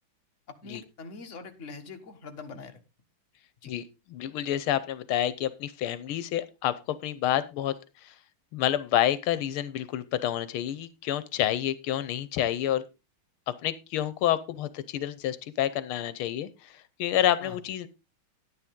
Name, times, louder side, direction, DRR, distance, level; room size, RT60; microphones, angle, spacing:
voice 1, 0.5-2.8 3.6-3.7 17.4-17.6, left 4 dB, 40° left, 5 dB, 1.6 m, -43 dB
voice 2, 4.1-7.7 8.0-8.1 8.5-12.8 13.6-17.9, left 11 dB, 85° left, 15 dB, 1.6 m, -28 dB
11.0 x 9.8 x 3.6 m, 0.26 s
omnidirectional pair, 2.3 m